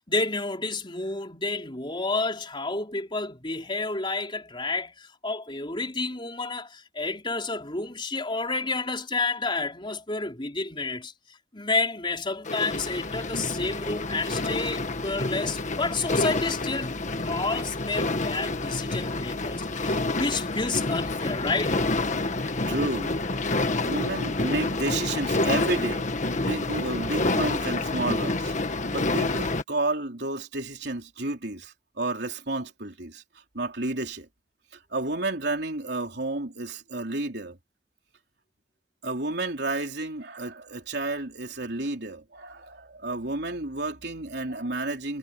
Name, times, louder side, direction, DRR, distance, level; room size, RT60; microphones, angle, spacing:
voice 1, 0.0-11.1 11.5-17.0 17.2-21.8, left 3 dB, 30° left, 4.2 m, -30 dB
sound 1, 12.4-29.6, left 2 dB, 45° left, 1.6 m, -28 dB
voice 2, 22.7-23.2 23.8-26.1 26.3-33.2 33.5-34.3 34.7-37.6 39.0-45.2, right 2 dB, 70° right, 4.0 m, -31 dB
head